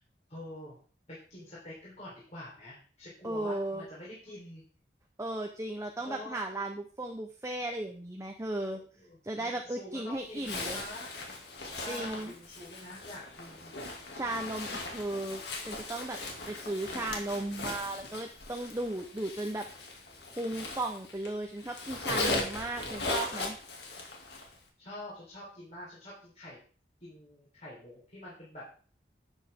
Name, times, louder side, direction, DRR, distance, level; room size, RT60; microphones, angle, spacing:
voice 1, 0.3-0.8 1.1-4.6 6.0-6.4 8.6-11.1 11.7-13.7 24.8-26.6 27.0-28.7, left 1 dB, 40° left, -7 dB, 4.0 m, -46 dB
voice 2, 3.2-3.8 5.2-8.8 9.2-10.8 11.9-12.3 14.1-16.2 16.5-19.7 20.3-23.6, right 1 dB, 15° right, 2 dB, 0.9 m, -36 dB
Zipper (clothing), 10.4-21.3 21.6-24.5, left 2 dB, 70° left, 2.5 m, -38 dB
12.0 x 8.2 x 3.7 m, 0.41 s
head